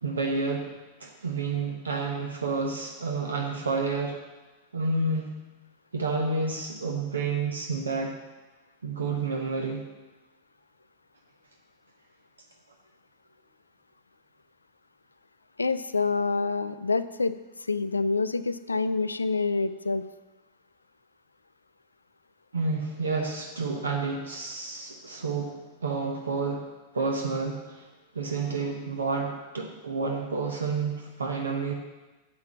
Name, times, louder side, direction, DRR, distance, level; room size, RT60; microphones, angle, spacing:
voice 1, 0.0-0.7 1.0-4.2 4.7-5.4 5.9-8.1 8.8-9.8 22.5-26.7 26.9-27.9 28.1-31.7, right 4 dB, 70° right, 2 dB, 0.9 m, -30 dB
voice 2, 15.6-20.1, left 3 dB, 80° left, 14 dB, 0.4 m, -27 dB
7.4 x 6.1 x 7.1 m, 1.1 s
figure-of-eight pair, 90°, 0 cm